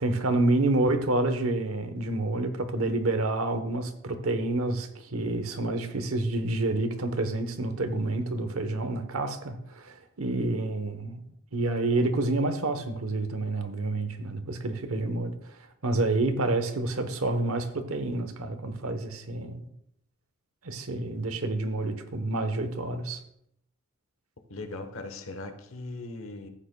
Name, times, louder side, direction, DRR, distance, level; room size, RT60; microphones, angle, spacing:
voice 1, 0.0-11.2 11.5-15.6 15.8-19.7 20.6-23.2, right 2 dB, 70° right, 8 dB, 1.0 m, -28 dB
voice 2, 24.5-26.5, left 2 dB, 65° left, 8 dB, 1.0 m, -39 dB
14.5 x 9.0 x 2.2 m, 0.75 s
head